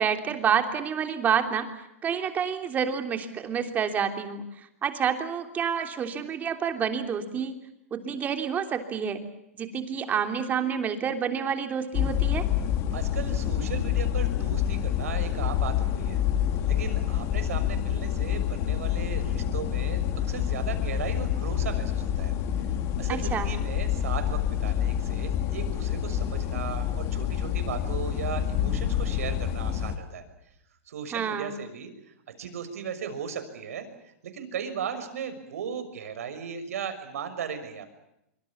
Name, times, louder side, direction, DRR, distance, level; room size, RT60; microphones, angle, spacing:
voice 1, 0.0-1.7 2.0-7.6 7.9-9.2 9.6-12.5 23.1-23.5 31.1-31.5, right 7 dB, 20° right, 6 dB, 3.2 m, -28 dB
sound 1, 11.9-30.0, left 10 dB, 35° left, 3.1 m, -27 dB
voice 2, 12.9-16.2 16.7-22.3 23.0-30.2 30.9-31.9 32.4-33.9 34.2-37.9, right 7 dB, 75° right, 9 dB, 6.2 m, -37 dB
25.5 x 25.0 x 7.2 m, 0.83 s
hypercardioid pair, 140°, 8 cm